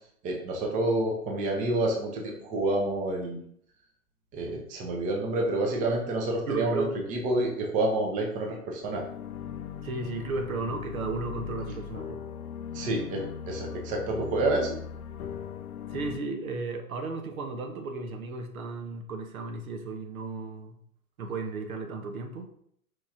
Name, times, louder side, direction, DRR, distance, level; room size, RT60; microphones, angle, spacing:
voice 1, 0.2-3.4 4.3-6.8 7.1-9.0 12.7-14.8, right 2 dB, 20° right, 0 dB, 0.6 m, -28 dB
voice 2, 6.5-6.9 9.8-12.2 15.9-20.7 21.2-22.5, right 3 dB, 70° right, 5 dB, 0.8 m, -34 dB
sound 1, 8.9-16.2, left 7 dB, 85° left, 0.5 m, -39 dB
4.7 x 3.9 x 2.4 m, 0.67 s
hypercardioid pair, 120°, 43 cm